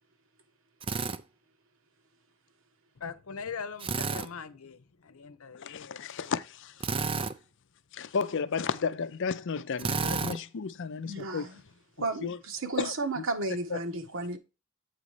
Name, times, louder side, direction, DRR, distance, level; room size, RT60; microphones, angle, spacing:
Drill, 0.8-1.2 3.8-4.3 6.8-7.4 9.8-10.4, right 4 dB, 25° right, 0.4 m, -30 dB
voice 1, 3.0-6.3, left 6 dB, 85° left, 0.8 m, -42 dB
voice 2, 5.5-6.8 7.1-7.3 7.9-11.5 12.2-12.4 12.8-12.9 13.7-13.8, left 5 dB, 60° left, 0.5 m, -33 dB
voice 3, 11.0-11.6 12.0-14.4, right 2 dB, 65° right, 1.3 m, -33 dB
8.1 x 4.1 x 4.8 m
head